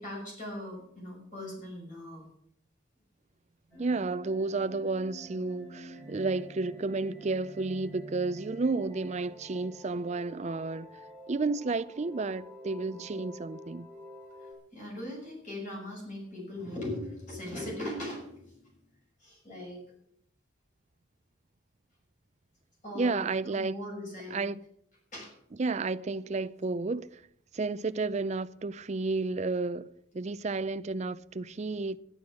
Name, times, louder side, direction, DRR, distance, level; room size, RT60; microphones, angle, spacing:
voice 1, 0.0-2.3 12.9-13.0 13.3-13.4 14.4-18.7 19.2-19.8 22.8-24.5 25.1-25.3, left 1 dB, 40° left, 6.4 m, -40 dB
sound 1, 3.7-14.5, right 1 dB, 15° left, 4.4 m, -49 dB
voice 2, 3.8-10.9 11.3-13.9 22.9-23.8 24.3-24.6 25.6-27.2 27.5-29.9 30.1-32.0, right 3 dB, 35° right, 0.4 m, -31 dB
12.0 x 11.0 x 6.3 m
head